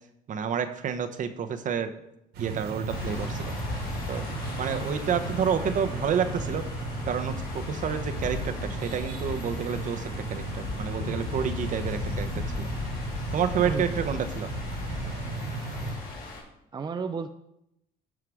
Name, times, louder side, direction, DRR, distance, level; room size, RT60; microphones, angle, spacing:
voice 1, 0.3-1.9 2.4-3.6 4.1-4.3 4.6-6.6 7.0-12.7 13.3-14.5, right 7 dB, 50° right, 9 dB, 0.8 m, -29 dB
sound 1, 2.3-15.9, right 3 dB, 80° right, 2.2 m, -36 dB
sound 2, 2.9-16.4, left 3 dB, 60° left, 3.7 m, -36 dB
voice 2, 13.6-14.0 16.7-17.3, right 5 dB, 25° right, 8 dB, 0.4 m, -32 dB
11.0 x 4.9 x 4.7 m, 0.82 s
cardioid pair, 110°, 17 cm